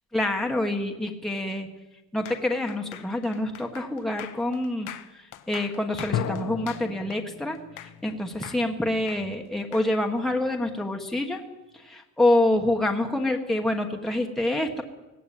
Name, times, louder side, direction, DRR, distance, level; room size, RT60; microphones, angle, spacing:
voice 1, 0.1-1.7 2.1-11.4 11.7-14.8, left 1 dB, ahead, 2 dB, 1.3 m, -27 dB
sound 1, 2.3-8.1 8.4-9.9, left 11 dB, 75° left, 1.4 m, -43 dB
sound 2, 6.1-9.6, left 8 dB, 60° left, 1.4 m, -35 dB
18.5 x 16.0 x 9.2 m, 1.1 s
cardioid pair, 175°, 31 cm